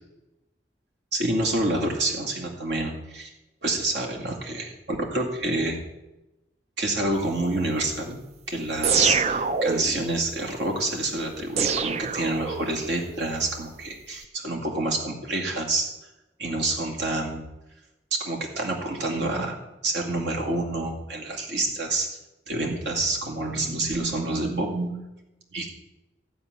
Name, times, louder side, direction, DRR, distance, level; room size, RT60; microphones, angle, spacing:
voice 1, 1.1-3.3 3.6-5.8 6.8-8.2 8.5-15.9 16.4-17.4 18.1-22.1 22.5-25.0 25.5-25.7, right 2 dB, 75° right, -1 dB, 2.3 m, -28 dB
sound 1, 8.8-10.1 11.6-12.9, right 5 dB, 35° right, 0.4 m, -25 dB
14.5 x 5.1 x 9.4 m, 1.0 s
head